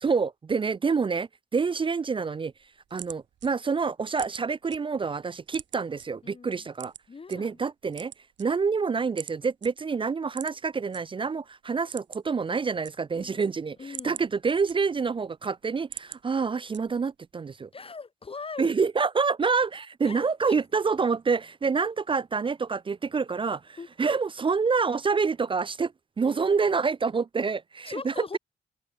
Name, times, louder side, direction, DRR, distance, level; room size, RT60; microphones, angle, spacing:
voice 1, 0.0-2.5 2.9-6.9 7.3-8.1 8.4-17.7 18.6-28.4, right 5 dB, 25° right, 0.5 m, -27 dB
sound 1, 2.5-4.8 5.1-6.1 6.7-7.4 7.8-8.8 9.2-9.4 9.6-9.7 10.3-11.0 11.3-11.4 11.7-12.4 12.6-13.3 13.7-15.2 15.6-16.2 16.7-17.2, right 10 dB, 65° right, 3.5 m, -42 dB
voice 2, 6.2-6.7 7.1-7.5 13.2-13.5 13.8-14.2 17.7-18.7 20.0-20.6 23.8-23.9 27.8-28.4, left 4 dB, 30° left, 1.2 m, -40 dB
open air
cardioid pair, 90°, 20 cm